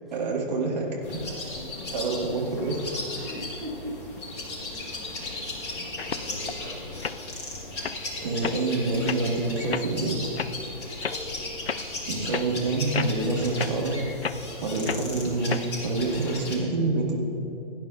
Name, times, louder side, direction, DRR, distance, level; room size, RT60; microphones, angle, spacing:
voice 1, 0.1-0.9 1.9-2.9 8.2-10.3 12.1-14.0 14.6-17.2, right 3 dB, 45° right, -1 dB, 2.0 m, -27 dB
sound 1, 1.0-16.6, left 2 dB, 30° left, 1.9 m, -36 dB
voice 2, 1.4-1.9 3.2-4.0 4.7-5.4 5.8-6.8, equal, ahead, -8 dB, 0.7 m, -41 dB
sound 2, 6.0-6.5 7.0-7.2 7.7-8.0 8.4-8.6 9.1-9.2 9.7-9.9 10.4-10.5 11.0-11.2 11.7-11.8 12.3-12.5 12.9-13.2 13.6-13.7 14.2-14.4 14.9-15.0 15.5-15.6, left 6 dB, 90° left, 0.5 m, -31 dB
16.5 x 10.5 x 2.6 m, 3.0 s
figure-of-eight pair, 135°, 29 cm